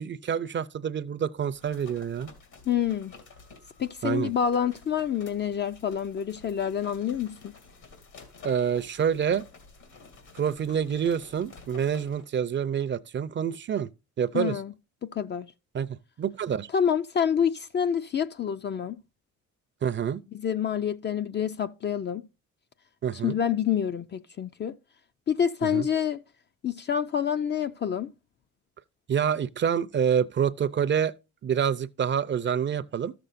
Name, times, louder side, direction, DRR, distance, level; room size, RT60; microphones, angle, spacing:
voice 1, 0.0-2.3 4.0-4.3 8.4-9.4 10.4-13.9 14.2-14.6 15.7-15.9 16.2-16.7 19.8-20.2 23.0-23.4 25.6-25.9 29.1-31.1 31.4-33.1, right 8 dB, 40° right, 0.5 m, -27 dB
sound 1, 1.4-12.3, left 4 dB, 75° left, 2.7 m, -51 dB
voice 2, 2.7-3.1 3.8-7.6 14.3-14.7 15.0-15.5 16.7-19.0 20.3-22.3 23.2-24.8 25.3-26.2 26.6-28.1, left 8 dB, 35° left, 0.4 m, -27 dB
13.5 x 6.8 x 2.5 m
cardioid pair, 90°, 30 cm